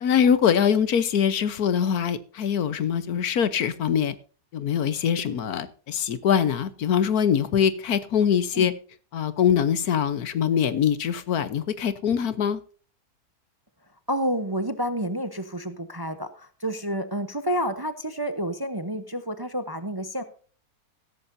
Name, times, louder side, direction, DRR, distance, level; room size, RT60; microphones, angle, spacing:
voice 1, 0.0-4.1 4.5-8.7 9.1-12.6, left 8 dB, 75° left, 13 dB, 1.5 m, -23 dB
voice 2, 14.1-20.2, equal, 20° right, 10 dB, 0.7 m, -29 dB
15.5 x 14.0 x 2.7 m, 0.40 s
omnidirectional pair, 1.6 m